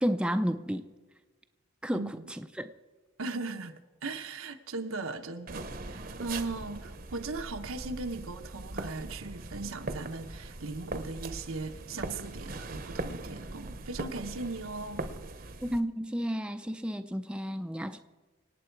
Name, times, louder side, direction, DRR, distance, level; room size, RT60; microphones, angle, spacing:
voice 1, 0.0-0.8 1.8-2.7 15.6-18.0, equal, 5° right, 0.5 m, -32 dB
voice 2, 1.9-2.3 3.2-15.1, right 3 dB, 85° right, 1.1 m, -38 dB
sound 1, 5.5-15.8, right 2 dB, 45° right, 0.9 m, -40 dB
25.5 x 8.9 x 4.7 m
head